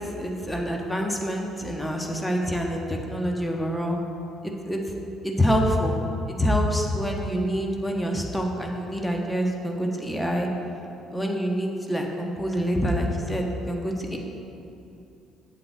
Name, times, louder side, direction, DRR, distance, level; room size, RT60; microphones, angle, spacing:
voice 1, 0.0-4.0 4.4-4.8 5.2-6.0 6.3-10.5 11.1-14.2, equal, 10° left, 1 dB, 1.3 m, -26 dB
7.9 x 7.6 x 4.7 m, 2.7 s
figure-of-eight pair, 50°, 0 cm